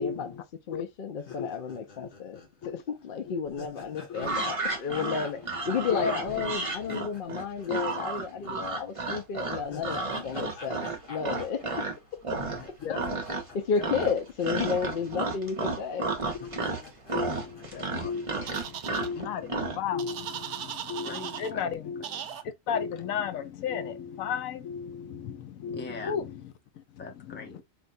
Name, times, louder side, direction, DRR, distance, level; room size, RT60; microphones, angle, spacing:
voice 1, 0.0-12.4 12.9-13.0 13.3-16.1, left 6 dB, 60° left, 0.6 m, -32 dB
sound 1, 1.2-8.5 8.7-8.8 9.3-14.6 14.8-14.9 15.7-15.8 16.1-18.4, left 4 dB, 45° left, 1.2 m, -49 dB
sound 2, 4.1-12.0 12.2-12.7 12.9-13.6 13.8-19.8, right 3 dB, 30° right, 0.8 m, -32 dB
voice 2, 5.9-6.2 7.7-8.0 12.8-13.0 16.4-16.6 17.1-22.0 22.7-26.3, left 7 dB, 80° left, 1.0 m, -34 dB
voice 3, 12.3-12.7 17.4-18.2 21.0-22.4 25.7-26.1 27.0-27.6, left 3 dB, 10° left, 0.6 m, -44 dB
sound 3, 18.5-19.1 20.0-21.5 22.0-22.4, right 9 dB, 65° right, 0.8 m, -38 dB
4.5 x 2.7 x 2.5 m
omnidirectional pair, 1.4 m